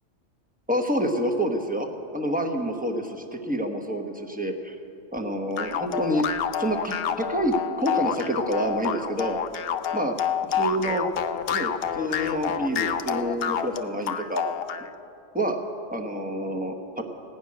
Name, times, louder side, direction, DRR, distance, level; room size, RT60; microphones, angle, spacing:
voice 1, 0.7-4.7 5.1-6.2 6.6-9.4 9.9-10.1 10.6-11.1 11.5-14.4 15.3-15.6 15.9-17.0, equal, 10° right, 3 dB, 0.9 m, -27 dB
sound 1, 5.6-14.9, left 9 dB, 60° left, 0.7 m, -28 dB
17.0 x 6.2 x 9.6 m, 2.7 s
omnidirectional pair, 1.2 m